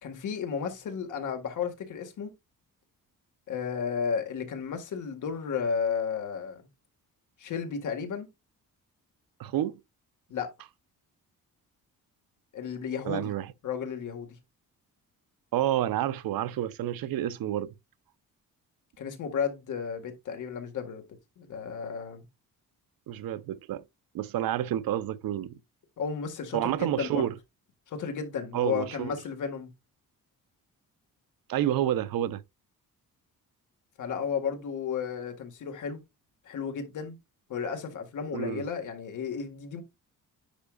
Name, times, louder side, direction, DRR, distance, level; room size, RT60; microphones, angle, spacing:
voice 1, 0.0-2.3 3.5-6.7 7.4-8.3 10.3-10.5 12.5-13.3 13.6-14.4 19.0-21.0 21.4-22.2 26.0-27.3 27.9-29.7 34.0-36.0 36.5-37.2 37.5-39.8, left 6 dB, 60° left, 1.9 m, -33 dB
voice 2, 9.4-9.8 13.0-13.5 15.5-17.7 23.1-23.8 24.1-25.6 26.5-27.3 28.5-29.2 31.5-32.4 38.3-38.6, right 12 dB, 85° right, 0.7 m, -29 dB
10.0 x 4.6 x 2.5 m
wide cardioid pair, 175°, 34 cm